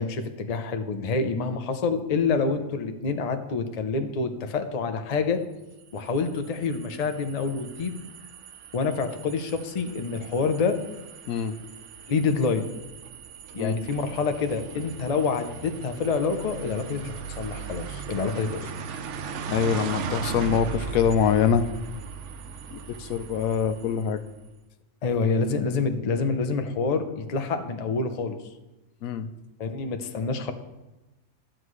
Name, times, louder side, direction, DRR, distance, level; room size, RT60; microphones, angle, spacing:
voice 1, 0.0-5.4 5.9-8.0 8.7-10.8 12.1-12.7 13.5-18.7 25.0-28.4 29.6-30.5, left 4 dB, 45° left, 7 dB, 0.5 m, -27 dB
sound 1, 5.8-24.3, right 6 dB, 65° right, 0.9 m, -38 dB
voice 2, 19.5-21.6 22.7-24.2 29.0-29.3, left 7 dB, 75° left, 10 dB, 1.0 m, -24 dB
13.5 x 7.5 x 3.2 m, 1.0 s
omnidirectional pair, 1.5 m